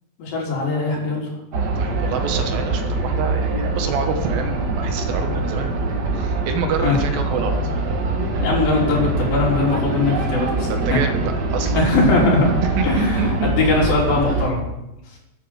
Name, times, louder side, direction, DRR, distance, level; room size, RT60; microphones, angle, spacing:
voice 1, 0.2-1.3 6.8-7.0 8.4-11.0 11.8-12.5 12.8-13.2 13.6-14.6, left 3 dB, 85° left, -4 dB, 5.3 m, -20 dB
sound 1, 1.5-14.5, right 2 dB, 65° right, 1.0 m, -23 dB
voice 2, 1.8-7.6 10.7-11.8 12.8-13.5, right 4 dB, 90° right, 7 dB, 3.0 m, -27 dB
12.5 x 7.8 x 6.8 m, 0.90 s
omnidirectional pair, 4.0 m